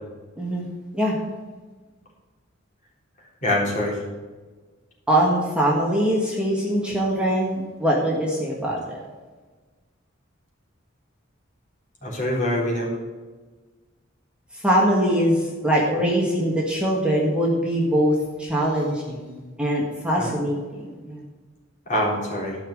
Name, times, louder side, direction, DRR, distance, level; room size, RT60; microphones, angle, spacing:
voice 1, 0.4-0.7 0.9-1.2 5.1-9.0 14.5-21.2, equal, 5° right, -4 dB, 1.8 m, -22 dB
voice 2, 3.4-4.0 12.0-12.9 21.9-22.6, left 1 dB, 40° left, -4 dB, 3.6 m, -24 dB
13.0 x 6.0 x 6.5 m, 1.3 s
head